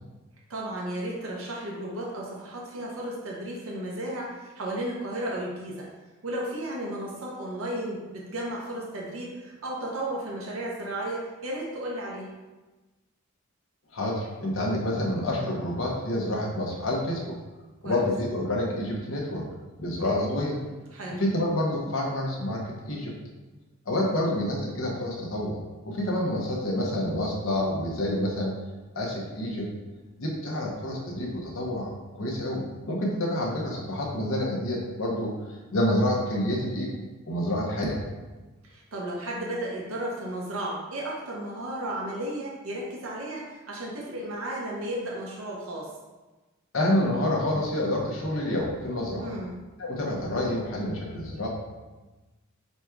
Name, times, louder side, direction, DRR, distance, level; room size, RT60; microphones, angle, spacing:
voice 1, 0.5-5.9 6.2-12.3 17.8-18.0 20.9-21.2 24.0-24.2 38.6-45.9 49.2-49.5, right 1 dB, 80° right, -3 dB, 0.8 m, -34 dB
voice 2, 13.9-17.4 17.8-19.4 19.8-20.6 21.2-23.1 23.9-25.6 25.8-28.5 28.9-29.7 30.2-35.3 35.7-36.9 37.3-38.0 46.7-49.3 49.8-51.5, left 1 dB, 65° left, -2 dB, 0.9 m, -28 dB
4.1 x 2.4 x 4.5 m, 1.2 s
head